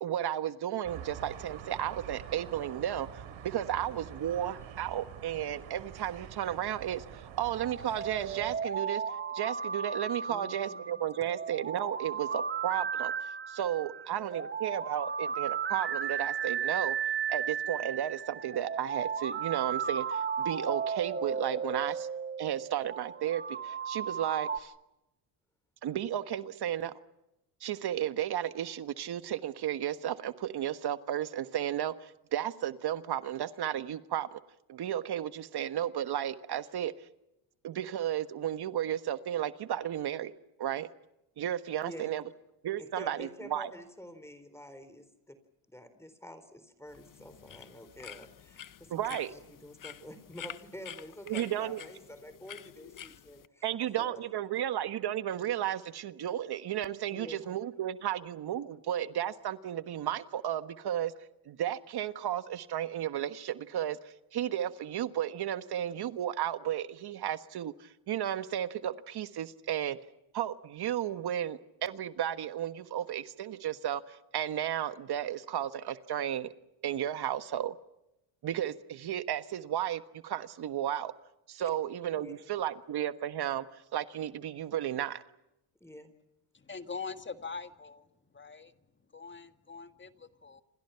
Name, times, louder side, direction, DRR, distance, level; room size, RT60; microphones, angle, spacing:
voice 1, 0.0-9.0 9.3-17.0 17.3-22.1 22.4-24.7 25.8-27.0 27.6-34.4 34.7-36.9 37.6-40.3 40.6-40.9 41.4-42.2 42.6-43.7 48.9-49.3 51.3-51.8 53.6-61.1 61.5-70.0 70.3-76.5 76.8-77.7 78.4-81.1 81.5-85.2, right 11 dB, 55° right, 1.4 m, -33 dB
sound 1, 0.8-8.6, right 9 dB, 75° right, 4.5 m, -46 dB
sound 2, 7.4-24.6, right 7 dB, 25° right, 1.8 m, -35 dB
voice 2, 10.3-11.0 41.8-42.2 42.8-45.4 45.7-53.7 53.9-54.2 57.1-57.5 82.1-82.5 85.8-86.1, equal, 5° left, 4.0 m, -48 dB
sound 3, 46.9-53.5, left 9 dB, 45° left, 1.3 m, -48 dB
voice 3, 86.5-88.1 88.3-88.7 89.1-90.6, left 5 dB, 25° left, 1.8 m, -43 dB
28.5 x 26.5 x 5.8 m
cardioid pair, 95°, 47 cm